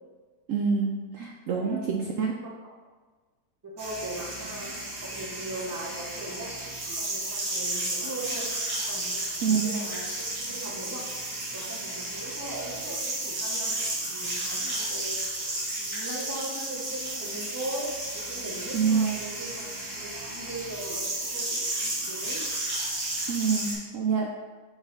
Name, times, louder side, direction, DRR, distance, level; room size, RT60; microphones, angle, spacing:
voice 1, 0.5-2.3 9.4-9.7 18.7-19.2 23.3-24.3, right 6 dB, 70° right, 0 dB, 0.8 m, -26 dB
voice 2, 1.5-2.6 3.6-6.5 7.0-8.5 8.9-10.0 10.4-11.1 11.5-15.2 15.8-22.4, right 1 dB, 20° right, -2 dB, 0.5 m, -39 dB
sound 1, 3.8-23.7, right 1 dB, 85° right, 2.2 m, -33 dB
4.7 x 4.3 x 5.0 m, 1.4 s
omnidirectional pair, 1.8 m